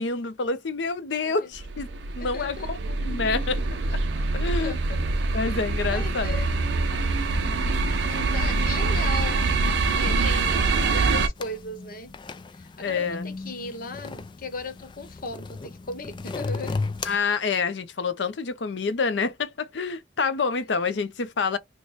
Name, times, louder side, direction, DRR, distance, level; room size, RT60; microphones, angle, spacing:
voice 1, 0.0-1.9 2.2-3.6 3.9-4.0 4.3-4.8 5.3-6.7 7.4-7.8 10.0-10.1 12.8-13.3 17.0-21.6, left 4 dB, 75° left, 0.6 m, -28 dB
sound 1, 1.5-11.3, right 3 dB, 75° right, 0.5 m, -25 dB
voice 2, 2.2-2.7 4.1-4.3 4.6-5.0 5.5-5.6 5.9-6.5 8.1-9.4 9.9-12.1 12.5-16.8 20.9-21.1, left 2 dB, 50° left, 0.9 m, -37 dB
sound 2, 11.4-17.2, left 3 dB, 25° left, 0.3 m, -35 dB
3.0 x 2.1 x 4.0 m
head